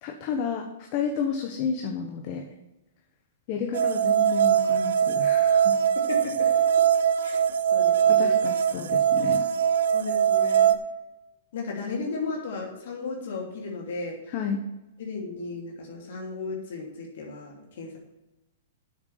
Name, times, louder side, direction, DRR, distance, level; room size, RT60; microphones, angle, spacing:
voice 1, 0.0-2.5 3.5-5.7 8.1-9.4 14.3-14.6, left 6 dB, 45° left, 3 dB, 1.2 m, -31 dB
sound 1, 3.7-10.8, right 8 dB, 75° right, 0.7 m, -22 dB
voice 2, 6.1-6.5 7.2-7.4 7.7-8.3 9.9-10.7 11.5-14.2 15.0-18.0, left 4 dB, 65° left, -1 dB, 2.7 m, -35 dB
8.2 x 6.4 x 6.7 m, 1.0 s
hypercardioid pair, 130°, 0 cm